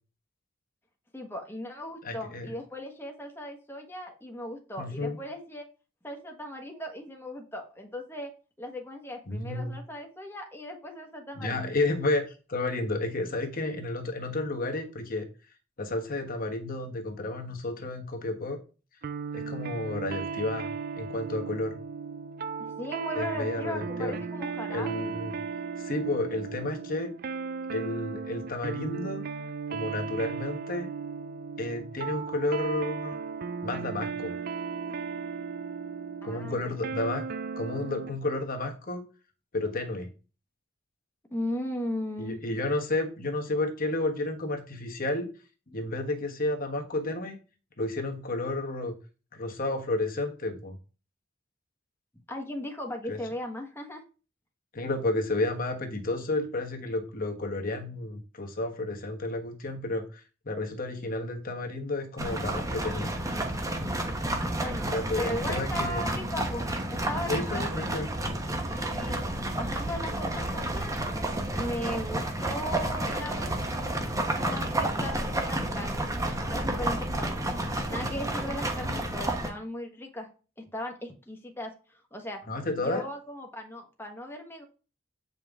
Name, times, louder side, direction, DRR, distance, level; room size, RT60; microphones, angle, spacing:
voice 1, 1.1-5.6 6.0-8.3 8.6-11.7 22.6-25.1 36.2-36.8 41.3-42.4 52.3-54.0 64.6-64.9 65.2-66.7 67.1-67.7 68.7-69.2 69.6-70.9 71.6-73.5 74.3-76.1 76.4-77.4 77.9-80.3 80.6-82.4 82.8-84.6, left 1 dB, 10° left, 2 dB, 1.2 m, -37 dB
voice 2, 2.0-2.5 4.8-5.2 9.3-9.8 11.4-15.3 15.8-18.6 19.3-20.7 21.0-21.8 23.2-24.1 24.7-25.4 25.8-27.1 27.7-29.2 29.7-30.9 31.6-33.2 33.6-34.3 36.2-37.2 37.6-39.0 39.5-40.1 42.2-45.3 45.7-47.4 47.8-48.9 49.3-50.7 53.1-53.2 54.7-63.1 64.9-66.1 67.3-68.1 82.5-83.0, left 2 dB, 45° left, 3 dB, 1.2 m, -31 dB
sound 1, 19.0-38.2, right 5 dB, 50° right, 0.5 m, -36 dB
horses to the gate in mud, 62.2-79.5, right 1 dB, 15° right, 1.1 m, -31 dB
8.3 x 5.4 x 3.6 m, 0.34 s
head